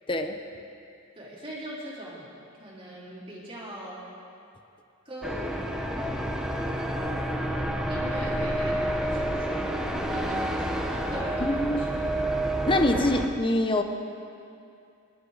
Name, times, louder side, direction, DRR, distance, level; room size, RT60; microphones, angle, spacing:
voice 1, 1.2-2.3 2.6-4.0 5.1-6.2 7.9-9.8 10.1-11.9, equal, 25° right, -6 dB, 3.6 m, -40 dB
sound 1, 5.2-13.3, right 1 dB, 5° right, 0.9 m, -29 dB
voice 2, 11.4-11.8 12.7-13.8, left 1 dB, 25° left, 6 dB, 0.9 m, -24 dB
25.0 x 11.5 x 4.1 m, 2.5 s
head